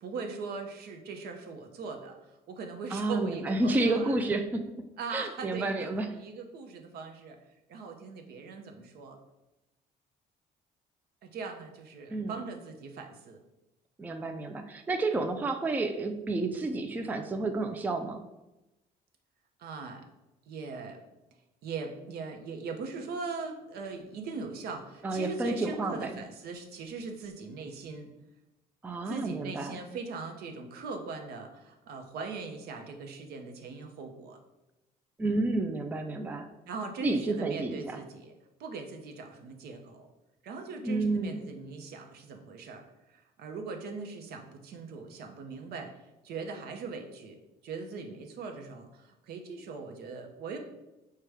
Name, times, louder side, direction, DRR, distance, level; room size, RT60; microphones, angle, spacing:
voice 1, 0.0-4.2 5.0-7.4 7.7-9.2 11.2-13.4 19.6-20.0 20.5-21.0 21.6-28.1 29.0-34.4 36.7-38.3 38.6-40.1 40.4-42.8 43.1-45.9 46.2-50.6, right 4 dB, 70° right, 4 dB, 0.7 m, -40 dB
voice 2, 2.9-6.1 12.1-12.3 14.0-18.2 25.0-26.1 28.8-29.8 35.2-36.5 37.0-38.0 40.8-41.4, right 2 dB, 10° right, 6 dB, 0.3 m, -30 dB
4.7 x 2.2 x 4.6 m, 0.99 s
cardioid pair, 110°, 17 cm